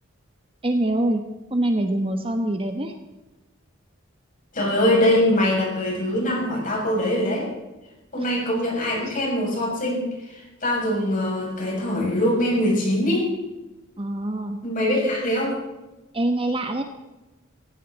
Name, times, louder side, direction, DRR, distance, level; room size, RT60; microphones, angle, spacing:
voice 1, 0.6-1.2 1.5-2.9 8.2-8.3 14.0-14.6 16.1-16.8, right 1 dB, 25° right, 6 dB, 1.3 m, -24 dB
voice 2, 4.5-7.5 8.1-13.3 14.6-15.6, left 1 dB, 40° left, -2 dB, 7.0 m, -23 dB
18.0 x 15.5 x 4.2 m, 1.0 s
head